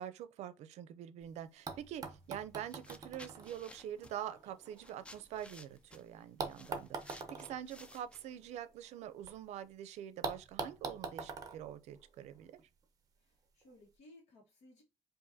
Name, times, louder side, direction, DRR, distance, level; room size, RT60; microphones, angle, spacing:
voice 1, 0.0-12.6, right 10 dB, 90° right, 0.4 m, -45 dB
sound 1, 1.2-1.3 1.7-5.7 6.4-9.3 9.6-9.7 10.2-12.6 13.6-13.7, right 4 dB, 35° right, 0.6 m, -45 dB
sound 2, 2.2-2.4 2.7-8.6, left 2 dB, 10° left, 0.3 m, -57 dB
voice 2, 13.2-14.8, left 1 dB, 80° left, 1.2 m, -61 dB
4.8 x 2.5 x 2.7 m
cardioid pair, 160°, 11 cm